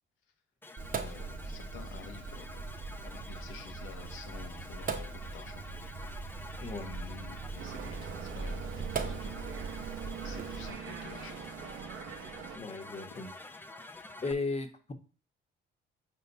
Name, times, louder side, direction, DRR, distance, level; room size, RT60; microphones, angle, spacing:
sound 1, 0.6-14.3, left 2 dB, 10° left, 0.7 m, -49 dB
Sink (filling or washing), 0.8-10.7, right 4 dB, 45° right, 0.9 m, -40 dB
voice 1, 1.0-2.6 3.0-5.7 6.7-9.5 10.2-11.4 13.0-13.3, left 8 dB, 90° left, 5 dB, 1.2 m, -50 dB
sound 2, 7.6-12.6, right 7 dB, 90° right, 0.9 m, -43 dB
voice 2, 12.5-13.3 14.2-14.9, left 3 dB, 30° left, 7 dB, 1.3 m, -35 dB
5.4 x 3.8 x 5.4 m, 0.36 s
cardioid pair, 90°, 20 cm